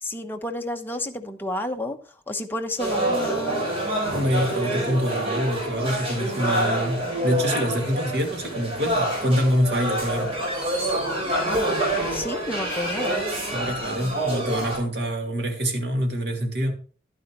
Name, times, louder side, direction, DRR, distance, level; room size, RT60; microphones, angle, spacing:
voice 1, 0.0-2.0 2.3-3.7 12.1-13.2, left 1 dB, 10° left, 1.0 m, -30 dB
sound 1, 2.8-14.8, right 1 dB, 35° right, 4.5 m, -26 dB
voice 2, 4.1-10.3 13.5-16.7, equal, 65° right, 2.3 m, -25 dB
11.5 x 9.3 x 3.1 m
head